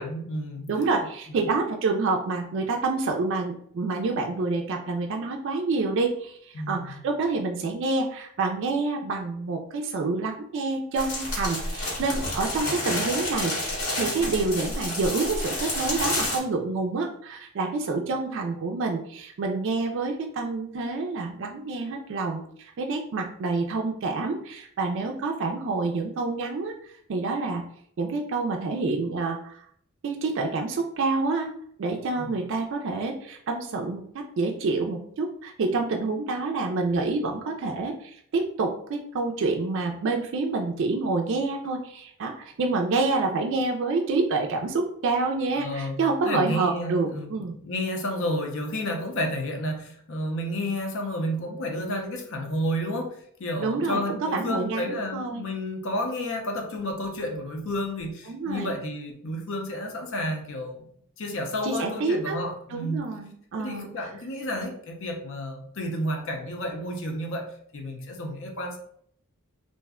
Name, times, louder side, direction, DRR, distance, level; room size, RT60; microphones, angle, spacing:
voice 1, 0.0-0.7 6.5-6.9 32.2-32.3 45.5-46.0 46.2-60.9 61.2-63.1 63.6-68.8, equal, 60° left, 2 dB, 0.6 m, -31 dB
voice 2, 0.7-26.7 27.1-27.6 28.0-29.6 30.0-31.5 31.8-47.6 53.6-55.4 58.3-58.7 61.6-62.4 62.7-63.9, right 3 dB, 55° right, 2 dB, 0.3 m, -28 dB
sound 1, 11.0-16.4, left 1 dB, 85° left, 1.4 m, -29 dB
2.5 x 2.1 x 3.5 m, 0.65 s
head